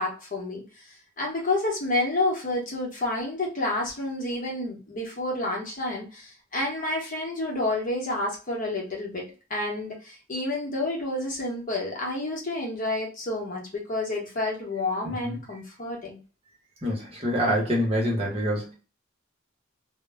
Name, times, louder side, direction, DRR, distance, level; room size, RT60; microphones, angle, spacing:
voice 1, 0.0-16.2, left 2 dB, 45° left, -2 dB, 0.9 m, -29 dB
voice 2, 15.1-15.4 16.8-18.7, equal, 30° right, -2 dB, 0.9 m, -26 dB
2.1 x 2.1 x 3.3 m, 0.35 s
head